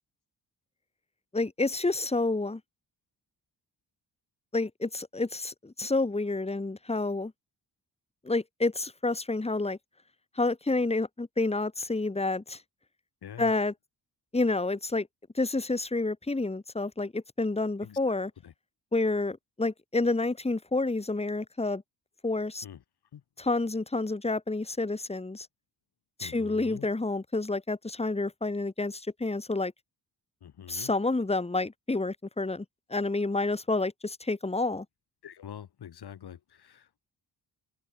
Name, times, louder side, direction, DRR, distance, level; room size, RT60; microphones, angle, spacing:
voice 1, 1.3-2.6 4.5-7.3 8.2-9.8 10.4-12.6 13.4-13.7 14.3-15.1 15.3-18.3 18.9-21.8 22.2-22.6 23.4-25.5 26.2-29.7 30.7-32.6 32.9-34.9, left 2 dB, 15° left, 2.3 m, -29 dB
voice 2, 13.2-13.5 17.8-18.0 18.4-18.5 22.6-22.8 23.1-23.2 26.2-26.9 30.4-30.9 35.2-37.0, left 9 dB, 65° left, 2.0 m, -45 dB
wide cardioid pair, 120°, 42 cm